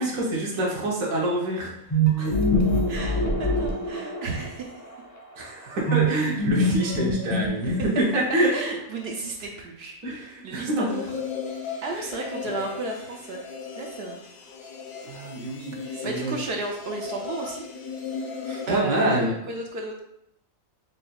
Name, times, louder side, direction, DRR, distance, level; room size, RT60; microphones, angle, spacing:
voice 1, 0.0-1.7 2.2-2.4 5.4-8.5 10.0-10.9 11.9-12.0 15.0-16.3 18.5-19.3, right 1 dB, 75° right, -3 dB, 1.3 m, -26 dB
sound 1, 1.9-4.5 5.9-8.3, right 1 dB, 20° left, 0.4 m, -24 dB
voice 2, 2.9-4.8 8.5-11.1 11.8-13.4 13.8-14.2 15.8-17.6 18.7-20.0, right 3 dB, 60° right, 1 dB, 0.7 m, -33 dB
sound 2, 10.9-18.8, left 5 dB, 65° left, 0.7 m, -36 dB
5.5 x 2.6 x 2.3 m, 0.77 s
omnidirectional pair, 1.4 m